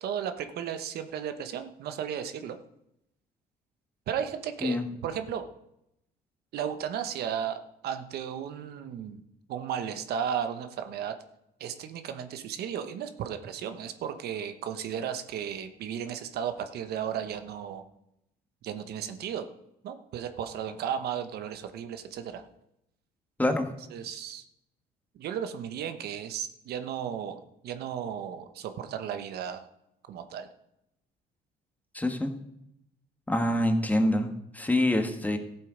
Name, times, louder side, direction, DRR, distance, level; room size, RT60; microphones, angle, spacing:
voice 1, 0.0-2.6 4.1-5.4 6.5-9.2 9.5-11.2 11.6-17.8 18.6-19.5 19.8-22.4 23.4-23.6 23.9-24.4 25.1-29.7 30.1-30.5, right 8 dB, 70° right, 8 dB, 1.0 m, -34 dB
voice 2, 23.4-23.7 31.9-32.3 33.3-35.4, left 1 dB, 10° left, 6 dB, 1.4 m, -26 dB
14.0 x 7.6 x 5.1 m, 0.80 s
cardioid pair, 110°, 17 cm